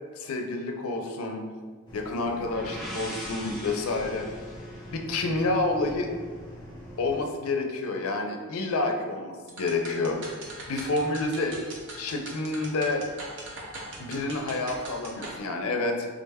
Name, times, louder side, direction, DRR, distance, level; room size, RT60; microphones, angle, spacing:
voice 1, 0.1-1.4 1.9-4.3 4.9-6.1 7.0-10.2 10.7-11.6 12.0-13.0 14.0-16.1, left 2 dB, 80° left, 3 dB, 0.4 m, -29 dB
sound 1, 1.9-7.2, equal, 20° left, 0.8 m, -44 dB
sound 2, 2.1-5.9, equal, ahead, 0.4 m, -42 dB
sound 3, 9.5-15.4, right 2 dB, 60° right, 0.6 m, -41 dB
3.7 x 2.1 x 3.4 m, 1.5 s
head